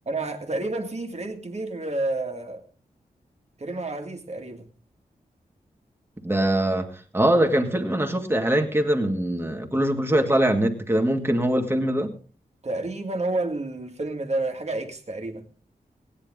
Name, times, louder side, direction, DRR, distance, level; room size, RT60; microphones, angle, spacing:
voice 1, 0.1-2.6 3.6-4.7 12.6-15.5, right 2 dB, 45° right, 2.1 m, -30 dB
voice 2, 6.2-6.9 7.1-12.1, right 1 dB, 15° right, 2.1 m, -22 dB
17.0 x 10.0 x 3.8 m
cardioid pair, 70°, 15 cm